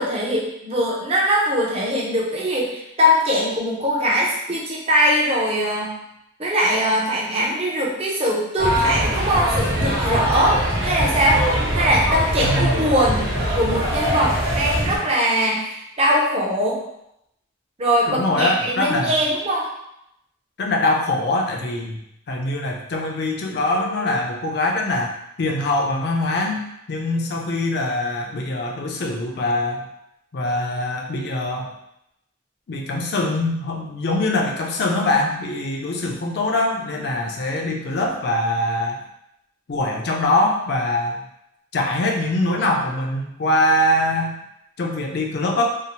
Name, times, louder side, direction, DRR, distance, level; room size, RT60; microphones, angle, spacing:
voice 1, 0.0-6.0 6.4-11.4 11.7-16.8 17.8-19.7, equal, 30° right, -3 dB, 0.5 m, -21 dB
sound 1, 8.6-15.0, equal, 60° right, 1.1 m, -22 dB
voice 2, 12.4-12.8 18.1-19.1 20.6-22.0 22.3-25.1 25.4-26.6 26.9-29.8 30.3-31.7 32.7-39.0 39.7-41.2 41.7-44.4 44.8-45.6, left 1 dB, 50° left, 1 dB, 0.4 m, -23 dB
2.7 x 2.0 x 2.8 m, 0.80 s
head